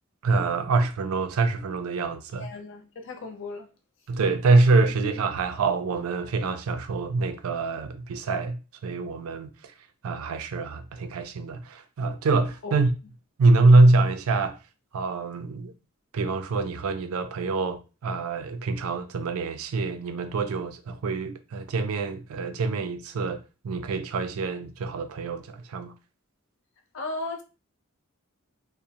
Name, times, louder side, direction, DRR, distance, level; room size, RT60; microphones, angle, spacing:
voice 1, 0.2-2.5 4.1-9.7 10.0-12.9 13.4-14.6 14.9-15.7 16.1-25.9, right 3 dB, 85° right, 0.4 m, -25 dB
voice 2, 2.4-3.7 12.6-12.7 26.9-27.4, left 2 dB, 60° left, 0.5 m, -35 dB
2.5 x 2.1 x 2.8 m
head